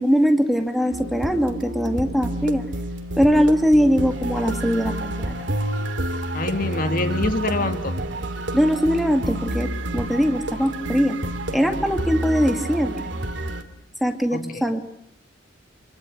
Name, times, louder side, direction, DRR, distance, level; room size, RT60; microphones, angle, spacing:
voice 1, 0.0-2.6 3.2-5.4 8.5-11.2 11.5-13.1 14.0-14.9, equal, ahead, 5 dB, 2.2 m, -21 dB
sound 1, 0.9-13.6, right 1 dB, 75° right, 2.8 m, -29 dB
voice 2, 6.3-8.0 14.3-14.7, left 2 dB, 50° left, 7 dB, 2.7 m, -25 dB
27.5 x 23.5 x 8.1 m, 0.73 s
head